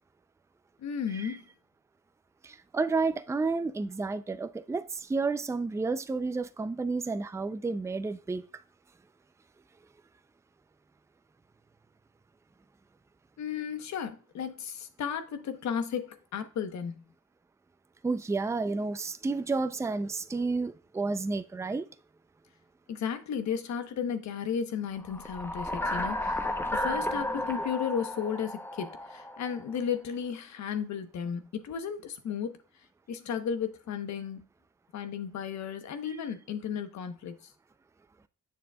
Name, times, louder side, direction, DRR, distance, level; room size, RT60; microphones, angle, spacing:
voice 1, 0.8-1.4 13.4-17.0 22.9-26.4 26.7-32.6 33.1-34.4 34.9-37.4, left 7 dB, 65° left, 1.0 m, -34 dB
voice 2, 2.4-8.5 18.0-21.9, right 3 dB, 10° right, 0.4 m, -31 dB
sound 1, 25.0-29.7, left 1 dB, 10° left, 0.9 m, -33 dB
7.5 x 6.7 x 2.3 m
cardioid pair, 90°, 30 cm